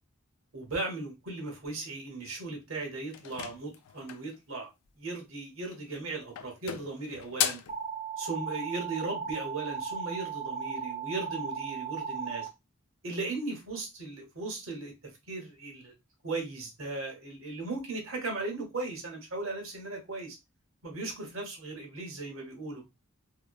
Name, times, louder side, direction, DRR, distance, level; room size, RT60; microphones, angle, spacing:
voice 1, 0.5-4.7 5.0-7.6 8.2-12.5 13.0-14.9 15.3-15.9 16.2-20.4 20.8-22.8, right 3 dB, 65° right, 1.0 m, -37 dB
sound 1, 3.1-4.4 5.6-6.0 6.4-7.8, left 10 dB, 85° left, 0.3 m, -35 dB
sound 2, 7.7-12.5, right 6 dB, 30° right, 0.4 m, -36 dB
2.8 x 2.1 x 2.2 m
head